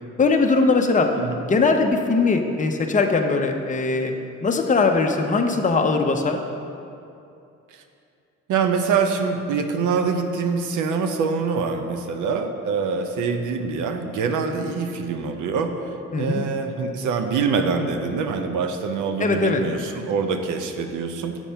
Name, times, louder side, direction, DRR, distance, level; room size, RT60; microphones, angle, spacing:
voice 1, 0.2-1.1 1.4-4.1 4.4-6.4 16.1-16.4 19.2-19.6, left 4 dB, 25° left, 3 dB, 0.7 m, -20 dB
voice 2, 8.5-21.4, right 5 dB, 80° right, 6 dB, 0.7 m, -25 dB
7.2 x 4.5 x 5.6 m, 2.6 s
cardioid pair, 90°, 30 cm